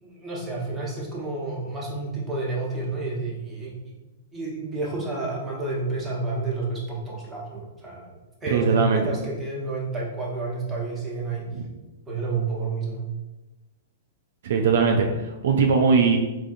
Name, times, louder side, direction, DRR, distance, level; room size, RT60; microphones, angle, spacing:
voice 1, 0.0-4.0 4.3-11.5 12.1-13.0, right 3 dB, 15° right, -5 dB, 1.0 m, -30 dB
voice 2, 8.5-9.0 11.5-11.7 14.4-16.2, right 5 dB, 70° right, 3 dB, 0.3 m, -20 dB
3.5 x 2.6 x 2.6 m, 1.1 s
hypercardioid pair, 125°, 0 cm